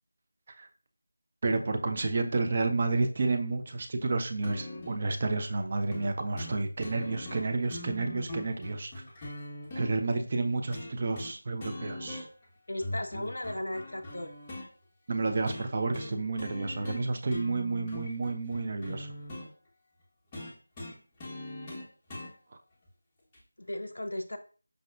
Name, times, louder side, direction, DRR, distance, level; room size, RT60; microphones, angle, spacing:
voice 1, 1.4-8.9 9.7-12.3 15.1-19.1, right 3 dB, 30° right, 5 dB, 0.3 m, -30 dB
sound 1, 4.4-5.0 5.9-6.1 6.4-6.5 6.8-9.9 10.7-11.3 11.6-12.4 12.8-14.7 15.5-15.7 15.9-16.1 16.4-17.0 17.3-19.5 20.3-22.3 23.3-23.4, left 1 dB, 15° left, 0.6 m, -41 dB
voice 2, 12.7-14.3 23.6-24.4, left 1 dB, 60° left, 6 dB, 0.3 m, -36 dB
5.1 x 2.0 x 2.3 m, 0.39 s
figure-of-eight pair, 165°, 0 cm